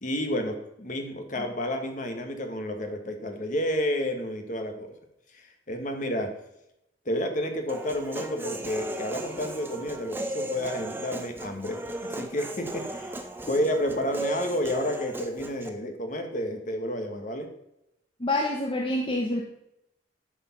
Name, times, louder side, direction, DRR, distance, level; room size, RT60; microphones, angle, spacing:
voice 1, 0.0-4.9 5.3-6.3 7.0-17.5, equal, 45° left, 5 dB, 1.5 m, -30 dB
Human voice, 7.7-15.7, right 1 dB, 10° right, 0.7 m, -36 dB
voice 2, 18.2-19.4, left 1 dB, 30° left, 0 dB, 0.9 m, -27 dB
11.5 x 5.0 x 5.9 m, 0.84 s
head